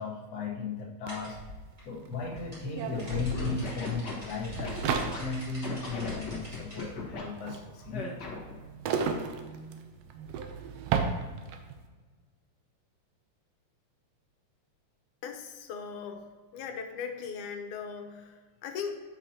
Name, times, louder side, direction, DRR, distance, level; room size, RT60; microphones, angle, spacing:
voice 1, 0.0-1.4 1.8-8.1, left 4 dB, 70° left, -1 dB, 0.8 m, -36 dB
sound 1, 1.1-6.9, left 1 dB, 15° right, 2.1 m, -40 dB
sound 2, 1.1-1.2 1.4-11.8, right 6 dB, 80° right, 1.5 m, -35 dB
Scratching (performance technique), 3.3-5.2 5.6-7.2 7.9-8.6, left 4 dB, 50° left, 1.4 m, -38 dB
voice 2, 15.2-16.2 16.5-18.9, left 6 dB, 90° left, 4 dB, 2.2 m, -38 dB
8.8 x 5.9 x 2.8 m, 1.4 s
omnidirectional pair, 3.4 m